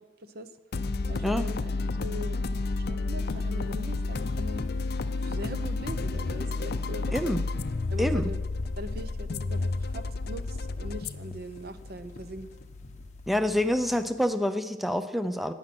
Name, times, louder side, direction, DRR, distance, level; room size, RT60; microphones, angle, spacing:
voice 1, 0.2-0.5 1.1-2.4 2.7-4.7 5.2-7.3 7.9-8.4 8.8-12.5, equal, 50° right, 11 dB, 0.8 m, -41 dB
sound 1, 0.7-14.1, left 3 dB, 50° left, 0.5 m, -32 dB
sound 2, 3.2-14.0, left 1 dB, 35° left, 1.4 m, -51 dB
voice 2, 7.1-7.4 8.0-8.3 13.3-15.5, left 1 dB, ahead, 10 dB, 0.5 m, -27 dB
16.0 x 9.8 x 6.0 m, 1.3 s
head